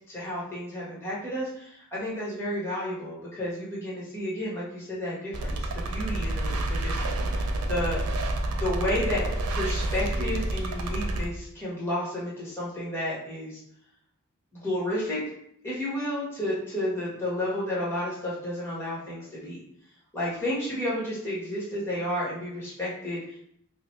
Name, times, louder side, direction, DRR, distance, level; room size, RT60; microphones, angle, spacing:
voice 1, 0.1-8.0 8.6-13.6 14.6-15.2 15.6-19.6 20.1-23.4, left 1 dB, 10° left, -7 dB, 1.3 m, -31 dB
sound 1, 5.3-11.3, right 1 dB, 80° right, 0.5 m, -29 dB
4.9 x 2.1 x 3.1 m, 0.72 s
head